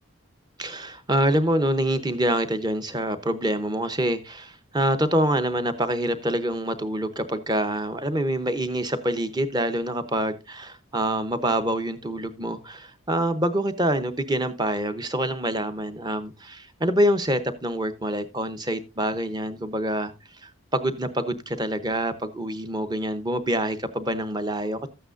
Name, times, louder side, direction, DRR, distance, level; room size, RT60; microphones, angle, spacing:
voice 1, 0.6-20.1 20.4-24.9, right 1 dB, 20° right, 0.8 m, -26 dB
13.0 x 8.8 x 2.5 m
head